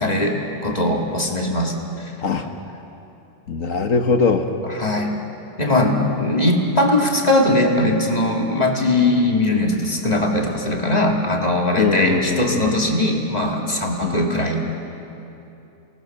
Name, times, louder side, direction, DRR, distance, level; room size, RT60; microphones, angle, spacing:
voice 1, 0.0-2.1 4.7-5.1 5.6-14.7, left 1 dB, 20° left, 0 dB, 2.3 m, -20 dB
voice 2, 3.5-4.5 11.8-12.7 14.0-14.2, left 5 dB, 50° left, 6 dB, 1.4 m, -20 dB
29.5 x 19.0 x 6.7 m, 2.9 s
omnidirectional pair, 2.0 m